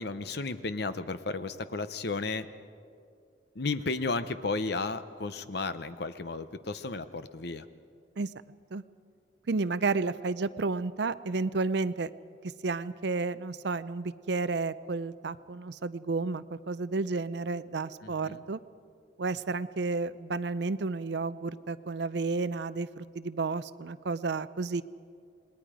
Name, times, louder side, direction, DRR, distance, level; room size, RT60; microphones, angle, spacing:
voice 1, 0.0-2.5 3.5-7.7 18.0-18.4, left 3 dB, 55° left, 12 dB, 0.8 m, -33 dB
voice 2, 9.5-12.1 12.6-18.6 19.2-24.8, right 3 dB, 60° right, 15 dB, 0.5 m, -31 dB
27.5 x 20.5 x 5.0 m, 2.3 s
head